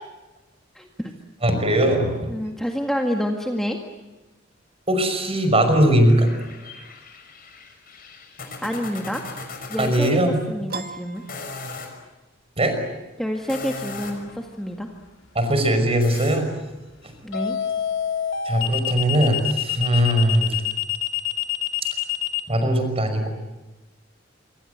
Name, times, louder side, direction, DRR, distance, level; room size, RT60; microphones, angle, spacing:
voice 1, 0.8-1.1 2.3-3.8 8.6-9.2 9.7-10.2 10.5-11.2 13.2-14.9 17.2-17.6, equal, ahead, 2 dB, 1.9 m, -28 dB
voice 2, 1.4-2.1 4.9-6.3 6.6-6.7 9.8-10.4 12.6-12.8 15.3-16.5 17.0-17.1 18.4-20.6 22.5-23.3, right 1 dB, 30° right, 7 dB, 5.7 m, -20 dB
sound 1, 6.0-10.1 11.2-11.9 13.3-14.3 16.0-16.4, left 4 dB, 50° left, 6.1 m, -38 dB
Piano, 10.7-12.2, right 4 dB, 50° right, 2.0 m, -37 dB
sound 2, 14.0-14.4 17.3-22.4, left 11 dB, 75° left, 2.4 m, -26 dB
26.5 x 25.0 x 8.0 m, 1.1 s
head